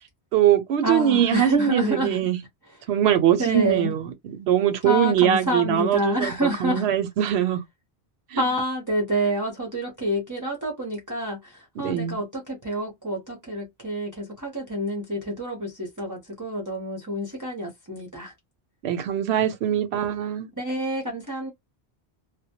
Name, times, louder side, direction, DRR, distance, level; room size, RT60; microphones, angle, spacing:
voice 1, 0.3-2.4 2.9-7.6 8.3-8.4 11.8-12.2 18.8-20.5, right 10 dB, 75° right, 0.8 m, -22 dB
voice 2, 0.8-2.2 3.4-3.9 4.8-6.8 8.4-18.3 20.6-21.5, equal, 20° right, 0.6 m, -28 dB
2.2 x 2.1 x 2.8 m
omnidirectional pair, 1.1 m